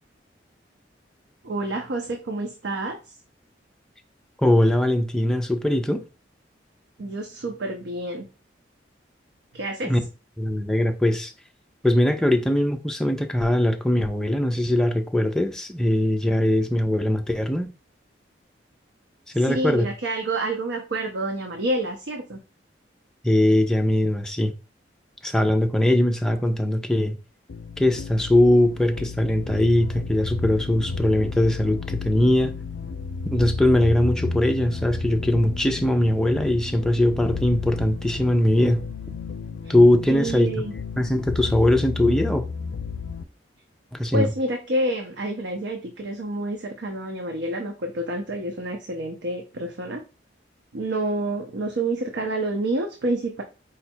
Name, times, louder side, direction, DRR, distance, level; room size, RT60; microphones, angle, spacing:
voice 1, 1.4-3.0 7.0-8.3 9.5-9.9 19.4-22.4 39.6-39.7 40.1-40.7 44.1-50.0 50.7-53.4, right 2 dB, 80° right, 0.6 m, -28 dB
voice 2, 4.4-6.0 9.8-10.0 10.4-11.3 11.8-17.7 19.3-19.9 23.2-24.5 25.2-27.2 27.8-32.6 33.3-38.9 39.7-40.5 41.0-42.4 43.9-44.3, left 1 dB, 5° left, 0.4 m, -21 dB
sound 1, 27.5-43.2, left 4 dB, 85° left, 0.4 m, -32 dB
4.9 x 2.3 x 4.3 m
head